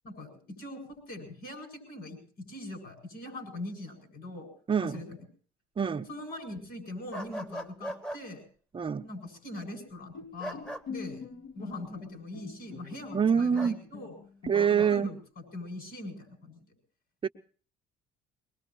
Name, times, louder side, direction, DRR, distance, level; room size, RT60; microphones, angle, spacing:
voice 1, 0.0-4.5 4.8-5.2 6.1-8.4 9.0-11.2 11.5-14.1 14.7-16.7, left 1 dB, 70° left, 5 dB, 8.0 m, -42 dB
voice 2, 4.7-5.0 5.8-6.1 8.7-9.0 13.1-13.8 14.4-15.1 17.2-17.3, right 7 dB, 30° right, 6 dB, 0.8 m, -25 dB
sound 1, 7.1-8.2 10.4-10.8 13.5-13.8 14.5-14.9, right 1 dB, 5° left, 1.1 m, -39 dB
Bowed string instrument, 10.1-15.0, left 5 dB, 85° left, 3.5 m, -45 dB
22.5 x 21.5 x 3.0 m, 0.42 s
cardioid pair, 110°, 17 cm